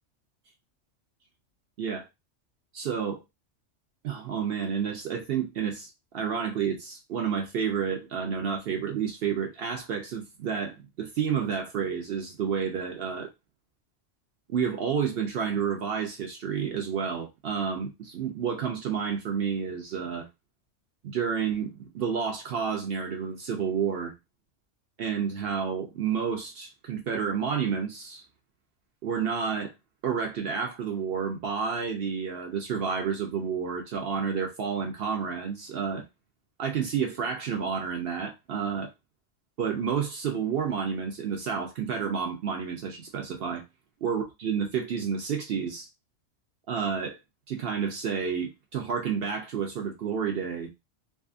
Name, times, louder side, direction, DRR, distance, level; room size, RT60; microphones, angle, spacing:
voice 1, 2.7-3.2 4.0-13.3 14.5-20.3 21.0-24.1 25.0-28.2 29.0-29.7 30.0-36.1 36.6-38.9 39.6-43.6 44.0-45.9 46.7-47.2 47.5-50.7, right 7 dB, 65° right, 0.7 m, -30 dB
2.7 x 2.4 x 2.4 m
omnidirectional pair, 1.3 m